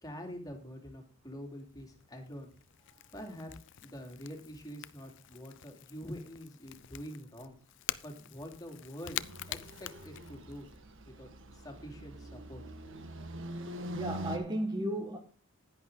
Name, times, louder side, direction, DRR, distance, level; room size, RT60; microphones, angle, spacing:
voice 1, 0.0-2.5 3.1-7.6 8.0-9.2 9.5-10.7 11.0-13.0, equal, 20° left, 2.8 m, -46 dB
Crackle / Crack, 1.2-10.8, left 13 dB, 60° left, 0.5 m, -46 dB
sound 1, 9.0-14.4, equal, 65° right, 1.5 m, -43 dB
voice 2, 13.5-15.2, right 1 dB, 20° right, 1.3 m, -35 dB
11.0 x 10.5 x 3.8 m
head